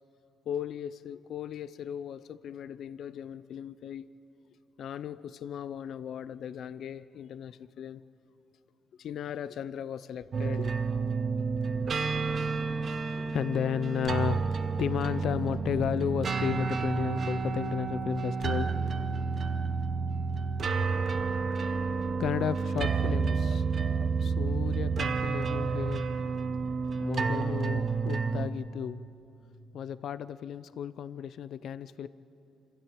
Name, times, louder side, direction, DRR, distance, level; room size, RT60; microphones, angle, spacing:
voice 1, 0.5-4.1 4.8-8.0 9.0-10.7 13.0-18.8 22.2-23.6 24.2-26.1 27.0-29.0 29.7-32.1, left 9 dB, 70° left, 15 dB, 0.6 m, -34 dB
sound 1, 10.3-28.5, right 5 dB, 50° right, 1.1 m, -30 dB
27.5 x 13.0 x 9.0 m, 2.8 s
cardioid pair, 90°, 0 cm